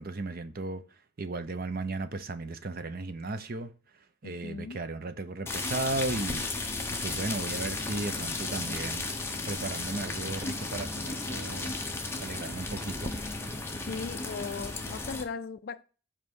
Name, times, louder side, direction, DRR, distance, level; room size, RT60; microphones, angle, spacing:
voice 1, 0.0-3.7 4.2-9.1 9.5-11.8 12.2-13.1, right 2 dB, 45° right, 0.6 m, -35 dB
voice 2, 4.2-4.8 13.9-15.8, left 5 dB, 45° left, 0.3 m, -38 dB
sound 1, 5.5-15.2, left 3 dB, 10° left, 0.8 m, -34 dB
5.4 x 4.3 x 6.1 m
head